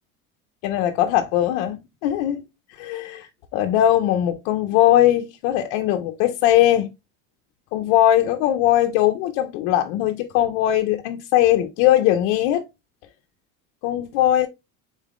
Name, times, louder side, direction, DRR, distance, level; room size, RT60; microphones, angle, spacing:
voice 1, 0.6-2.4 2.8-6.9 7.7-12.6 13.8-14.5, left 12 dB, 70° left, 0.6 m, -20 dB
4.0 x 3.6 x 3.5 m
cardioid pair, 135°, 34 cm